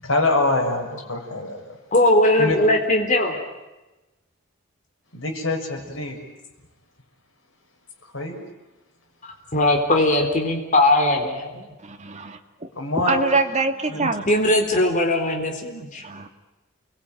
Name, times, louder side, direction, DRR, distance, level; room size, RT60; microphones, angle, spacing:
voice 1, 0.0-1.8 2.4-2.6 5.1-6.2 8.1-8.4 12.7-13.4 13.9-14.0, left 2 dB, 70° left, 2 dB, 6.5 m, -24 dB
voice 2, 1.9-3.4 9.2-11.7 13.9-16.0, left 1 dB, 40° left, 2 dB, 4.0 m, -20 dB
voice 3, 11.8-12.4 13.1-14.2 16.0-16.3, right 3 dB, 35° right, 5 dB, 2.1 m, -24 dB
30.0 x 21.5 x 9.2 m, 1.1 s
head